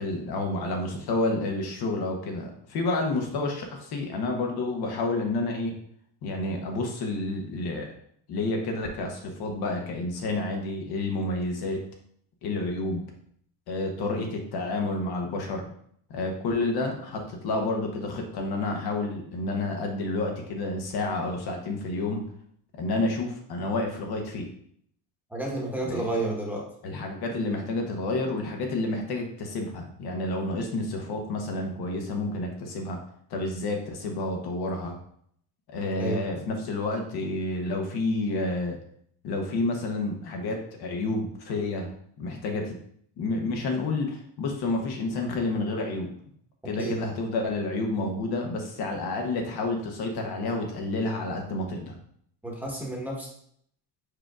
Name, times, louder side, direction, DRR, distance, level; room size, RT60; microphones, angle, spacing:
voice 1, 0.0-5.7 6.2-7.9 8.3-11.8 12.4-13.0 13.7-15.7 16.1-22.2 22.8-24.5 25.8-26.1 26.8-33.0 33.3-35.0 35.7-38.8 39.2-42.7 43.2-46.1 46.7-51.9, left 2 dB, 60° left, 2 dB, 1.0 m, -29 dB
voice 2, 25.3-26.6 36.0-36.2 46.8-47.0 52.4-53.3, right 1 dB, 5° right, -3 dB, 1.1 m, -30 dB
4.9 x 4.5 x 2.4 m, 0.66 s
cardioid pair, 120°, 43 cm